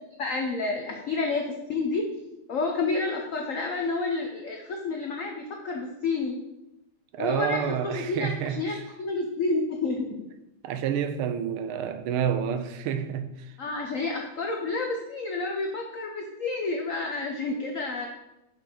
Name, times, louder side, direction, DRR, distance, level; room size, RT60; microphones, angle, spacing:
voice 1, 0.2-2.0 2.5-6.4 7.2-10.2 13.6-18.1, left 3 dB, 85° left, 0.7 m, -30 dB
voice 2, 7.1-8.8 10.6-13.5, right 8 dB, 80° right, 1.5 m, -29 dB
6.5 x 5.3 x 5.0 m
omnidirectional pair, 2.4 m